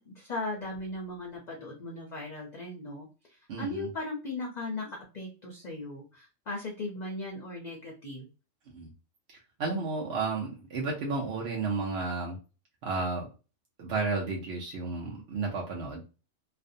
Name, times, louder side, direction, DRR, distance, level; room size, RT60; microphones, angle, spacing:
voice 1, 0.1-8.3, left 2 dB, 50° left, -1 dB, 0.5 m, -38 dB
voice 2, 3.5-3.9 8.7-8.9 9.3-12.4 12.8-13.3 13.8-16.0, right 3 dB, 65° right, -2 dB, 0.8 m, -32 dB
2.5 x 2.1 x 2.5 m, 0.33 s
omnidirectional pair, 1.3 m